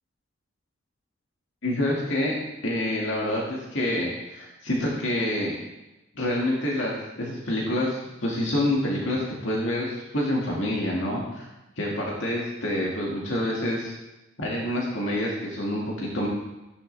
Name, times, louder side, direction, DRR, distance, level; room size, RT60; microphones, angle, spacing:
voice 1, 1.6-2.4 2.6-5.6 6.1-11.5 11.8-13.9 14.4-16.3, left 1 dB, 70° left, -3 dB, 2.0 m, -27 dB
14.0 x 10.5 x 3.3 m, 1.0 s
head